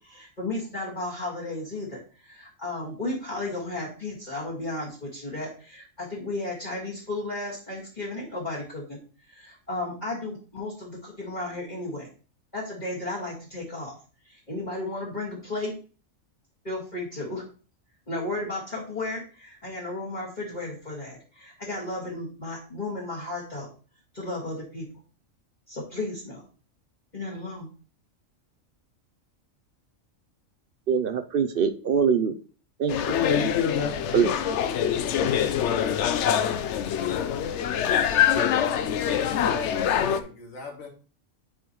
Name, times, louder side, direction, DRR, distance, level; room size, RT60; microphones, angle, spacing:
voice 1, 0.0-9.0 9.3-12.1 12.5-13.9 14.2-15.7 16.6-17.4 18.1-23.7 24.1-24.9 25.7-26.4 27.1-27.7, left 2 dB, 35° left, -6 dB, 2.0 m, -34 dB
voice 2, 30.9-32.3 32.8-33.0 33.3-33.5 34.1-34.3, right 6 dB, 60° right, 9 dB, 0.6 m, -23 dB
sound 1, 32.9-40.2, left 9 dB, 65° left, 0.9 m, -24 dB
voice 3, 39.0-40.9, left 3 dB, 80° left, 2 dB, 2.0 m, -39 dB
8.7 x 4.8 x 3.1 m, 0.38 s
omnidirectional pair, 1.4 m